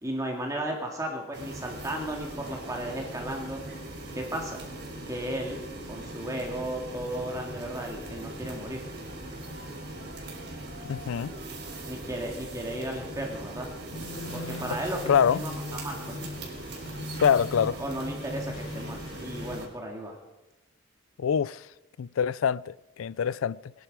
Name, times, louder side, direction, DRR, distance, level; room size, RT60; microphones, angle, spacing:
voice 1, 0.0-3.6 4.1-4.6 5.1-8.8 11.9-13.7 14.3-15.0 15.3-16.2 17.6-20.2, right 1 dB, 15° right, 2.1 m, -35 dB
sound 1, 1.3-19.7, right 1 dB, 55° right, 4.1 m, -40 dB
voice 2, 10.9-11.3 15.1-15.4 17.2-17.8 21.2-21.7 22.0-23.7, left 7 dB, 85° left, 0.4 m, -25 dB
sound 2, 13.9-19.6, left 2 dB, 65° left, 1.1 m, -40 dB
21.5 x 10.5 x 4.9 m
head